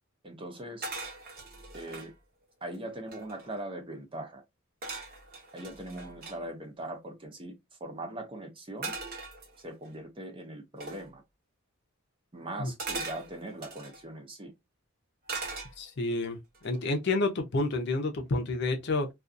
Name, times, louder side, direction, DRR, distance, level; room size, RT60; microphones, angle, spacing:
voice 1, 0.2-0.9 1.7-2.1 2.6-4.4 5.5-7.5 7.8-8.9 9.6-11.2 12.3-14.5, right 1 dB, 25° right, 0.5 m, -40 dB
sound 1, 0.8-2.1 2.7-2.8 3.0-3.6 4.8-6.4 8.8-9.9 10.8-11.1 12.8-14.0 15.3-16.1 16.5-16.9, right 3 dB, 45° right, 0.8 m, -40 dB
voice 2, 15.8-16.4 16.6-19.1, left 2 dB, 50° left, 0.6 m, -29 dB
2.5 x 2.4 x 2.4 m
head